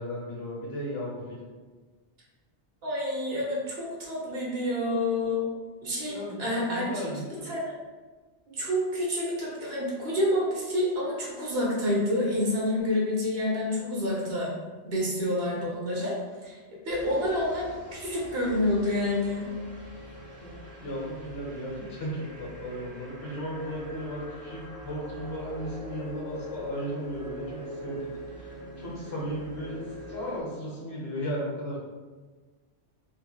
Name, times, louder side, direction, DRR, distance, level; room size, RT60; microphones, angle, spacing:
voice 1, 0.0-1.4 6.1-7.5 20.4-28.1 28.4-31.8, equal, 65° left, -5 dB, 1.1 m, -36 dB
voice 2, 2.8-5.5 5.8-7.0 7.4-7.7 8.5-14.5 14.8-16.1 16.4-16.6 16.8-19.5, left 1 dB, 65° right, -4 dB, 1.0 m, -28 dB
sound 1, 16.9-30.4, equal, 35° right, 0.8 m, -43 dB
3.1 x 3.0 x 2.2 m, 1.4 s
omnidirectional pair, 1.2 m